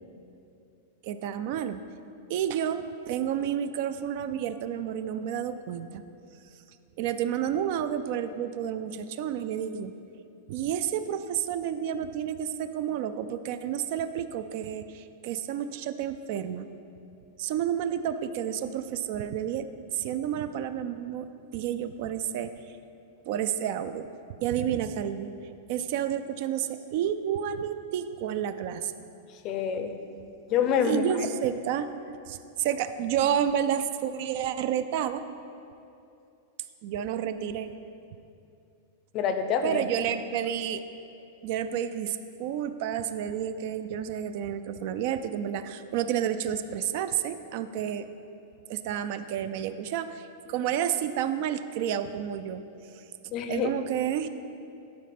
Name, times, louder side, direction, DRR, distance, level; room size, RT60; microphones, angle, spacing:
voice 1, 1.0-1.8 2.3-6.0 7.0-9.9 10.5-16.7 17.4-19.7 19.9-22.5 23.3-24.1 24.4-25.3 25.7-29.0 30.8-31.9 32.3-35.2 36.8-37.7 39.6-40.8 41.4-48.1 48.7-52.6 53.5-54.3, right 9 dB, 45° right, 11 dB, 0.3 m, -30 dB
voice 2, 29.4-29.9 30.5-31.0 39.1-39.8 53.3-53.7, left 7 dB, 30° left, 8 dB, 0.5 m, -26 dB
11.5 x 4.2 x 5.9 m, 2.7 s
supercardioid pair, 165°, 0 cm